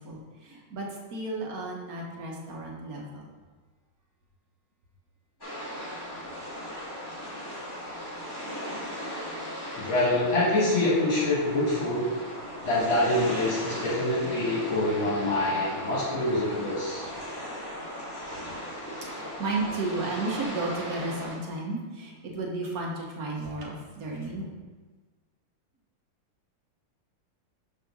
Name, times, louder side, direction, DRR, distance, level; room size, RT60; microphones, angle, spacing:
voice 1, 0.0-3.3 18.4-18.6 19.0-24.5, right 2 dB, 50° right, -1 dB, 1.3 m, -33 dB
sound 1, 5.4-21.4, equal, 10° left, 1.7 m, -38 dB
voice 2, 9.8-12.1 12.6-17.1, left 1 dB, 70° left, -7 dB, 2.2 m, -25 dB
6.6 x 3.7 x 6.0 m, 1.4 s
omnidirectional pair, 2.4 m